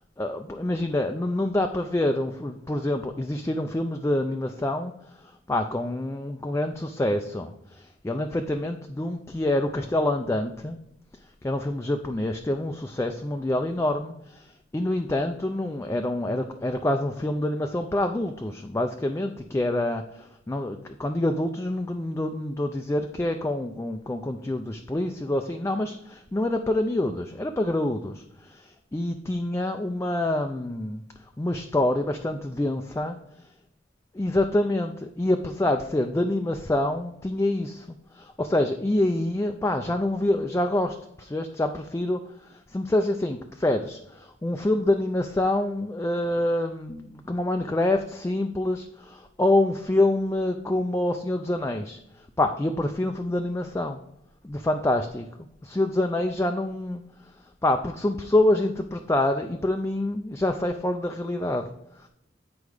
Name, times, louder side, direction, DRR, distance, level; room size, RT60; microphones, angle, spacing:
voice 1, 0.2-4.9 5.5-10.8 11.4-14.5 14.7-31.0 31.4-33.2 34.1-37.9 38.2-42.2 42.7-52.0 52.4-54.0 54.4-55.3 55.6-57.0 57.6-61.7, left 1 dB, 15° left, 5 dB, 0.4 m, -26 dB
8.2 x 4.7 x 4.9 m, 0.80 s
head